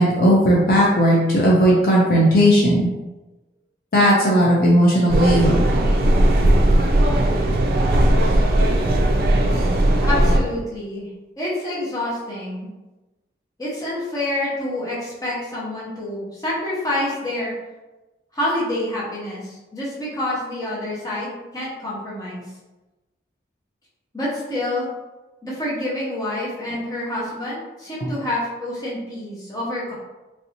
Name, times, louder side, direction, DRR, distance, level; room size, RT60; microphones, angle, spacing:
voice 1, 0.0-2.9 3.9-5.6 28.0-28.1, equal, 50° left, -4 dB, 0.5 m, -16 dB
sound 1, 5.1-10.4, right 1 dB, 50° right, 0.4 m, -17 dB
voice 2, 10.0-11.1 11.4-12.7 13.6-17.5 18.3-22.4 24.1-24.9 25.4-29.9, left 1 dB, 20° left, -7 dB, 0.9 m, -27 dB
3.3 x 2.7 x 2.8 m, 1.1 s
head